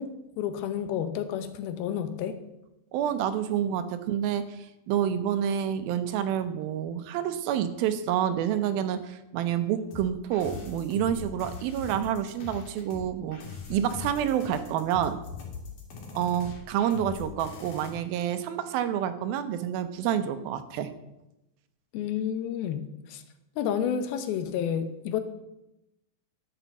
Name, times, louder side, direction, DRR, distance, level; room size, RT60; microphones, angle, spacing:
voice 1, 0.0-2.4 21.9-23.2 23.6-25.2, left 8 dB, 85° left, 10 dB, 2.9 m, -30 dB
voice 2, 2.9-13.4 13.7-15.2 16.1-20.9, right 9 dB, 80° right, 11 dB, 2.6 m, -28 dB
sound 1, 9.9-17.9, left 4 dB, 65° left, 3.8 m, -41 dB
11.0 x 7.2 x 7.0 m, 0.92 s
omnidirectional pair, 4.2 m